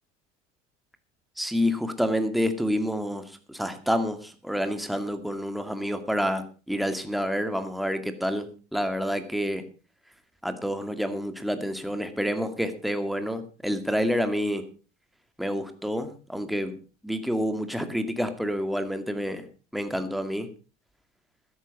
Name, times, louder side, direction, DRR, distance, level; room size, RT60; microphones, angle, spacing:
voice 1, 1.4-9.6 10.4-14.7 15.4-16.8 17.0-19.5 19.7-20.5, equal, ahead, 8 dB, 2.2 m, -28 dB
13.0 x 11.0 x 5.3 m, 0.35 s
hypercardioid pair, 70°, 37 cm